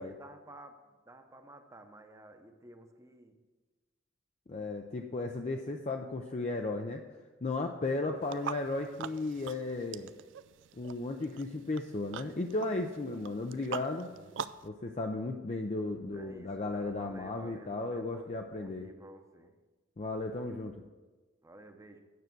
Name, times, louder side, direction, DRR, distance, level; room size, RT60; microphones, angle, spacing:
voice 1, 0.0-3.4 8.0-8.2 14.1-14.3 16.1-19.5 21.4-22.0, right 1 dB, 15° right, 5 dB, 0.8 m, -52 dB
voice 2, 4.5-7.0 7.4-10.1 10.8-14.1 14.6-18.9 20.0-20.7, left 2 dB, 35° left, 3 dB, 0.5 m, -35 dB
sound 1, 8.2-14.7, right 7 dB, 65° right, 0.4 m, -44 dB
9.3 x 6.5 x 6.1 m, 1.3 s
head